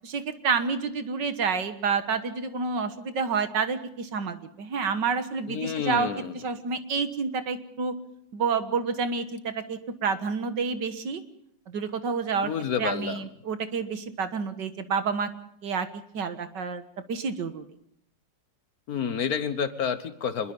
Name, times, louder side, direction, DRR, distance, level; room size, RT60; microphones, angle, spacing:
voice 1, 0.0-6.1 6.3-7.9 8.3-11.2 11.7-12.5 12.8-15.3 15.6-15.9 16.1-16.8 17.1-17.7, right 5 dB, 70° right, 9 dB, 2.0 m, -29 dB
voice 2, 5.5-6.4 12.4-13.2 18.9-20.5, left 7 dB, 55° left, 11 dB, 1.5 m, -29 dB
25.0 x 21.5 x 5.4 m, 0.72 s
omnidirectional pair, 2.0 m